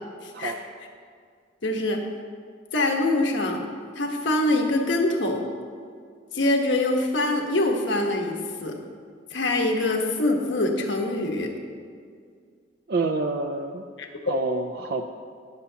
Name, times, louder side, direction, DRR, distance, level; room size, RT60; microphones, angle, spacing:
voice 1, 0.2-0.5 1.6-2.0 2.7-3.6 4.0-5.4 6.3-8.7 9.3-11.5 14.0-14.1, left 2 dB, 80° left, 2 dB, 1.2 m, -24 dB
voice 2, 12.9-13.8 14.2-15.1, right 3 dB, 55° right, 4 dB, 0.4 m, -27 dB
20.0 x 7.0 x 2.8 m, 2.1 s
head